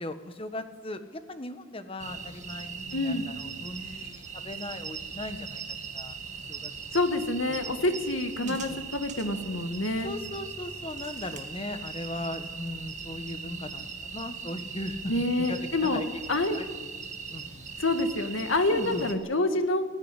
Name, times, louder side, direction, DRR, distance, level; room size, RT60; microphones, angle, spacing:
voice 1, 0.0-5.6 5.9-6.2 6.5-6.7 7.1-7.2 7.5-7.8 8.4-8.8 10.0-15.1 15.4-16.7 17.3-17.7 18.7-19.1, left 1 dB, 30° left, 9 dB, 1.3 m, -38 dB
sound 1, 2.0-19.2, right 6 dB, 40° right, 1.9 m, -40 dB
voice 2, 2.9-3.3 6.9-10.1 15.1-16.0 16.3-16.6 17.8-19.8, left 2 dB, 80° left, 8 dB, 1.8 m, -27 dB
18.5 x 14.5 x 9.9 m, 1.4 s
head